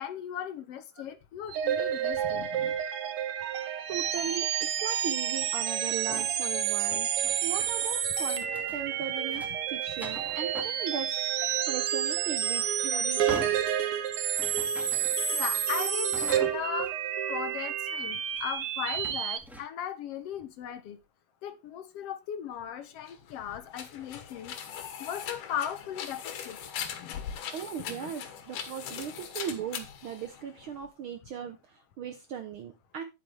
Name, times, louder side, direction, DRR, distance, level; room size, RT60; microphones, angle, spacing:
voice 1, 0.0-2.8 15.3-16.9 17.3-21.0 21.4-24.5 25.0-26.6 26.8-27.2 27.9-28.1, left 9 dB, 65° left, 1.6 m, -37 dB
sound 1, 1.5-19.4, right 9 dB, 65° right, 1.5 m, -30 dB
voice 2, 3.5-7.1 7.4-8.4 8.7-13.7 27.5-33.0, right 8 dB, 85° right, 1.1 m, -38 dB
sound 2, 6.1-9.0 9.3-11.1 11.5-11.6 12.5-16.9 18.0-18.7 19.0-19.6, equal, ahead, 1.3 m, -46 dB
sound 3, 23.0-30.9, left 8 dB, 90° left, 2.9 m, -40 dB
9.5 x 9.3 x 3.3 m
omnidirectional pair, 3.5 m